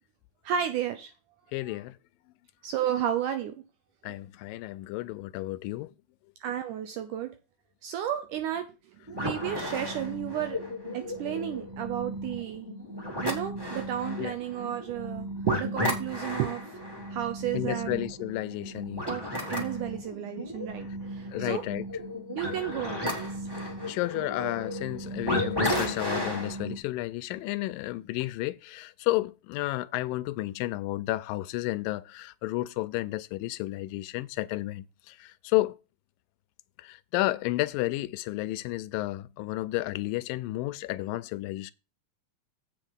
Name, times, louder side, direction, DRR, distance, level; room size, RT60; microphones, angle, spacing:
voice 1, 0.4-1.1 1.6-1.8 2.6-3.6 4.0-4.2 6.4-7.3 7.8-8.7 9.1-10.6 10.9-12.7 13.2-16.8 17.1-18.1 19.0-21.6 22.4-23.5, right 10 dB, 75° right, 2.1 m, -33 dB
voice 2, 1.5-2.0 4.0-5.9 14.2-14.3 17.5-19.1 21.3-21.9 23.9-35.8 36.8-41.7, left 18 dB, 85° left, 2.2 m, -32 dB
sound 1, 9.1-26.8, equal, 15° right, 0.8 m, -34 dB
8.1 x 5.7 x 5.3 m
omnidirectional pair, 4.0 m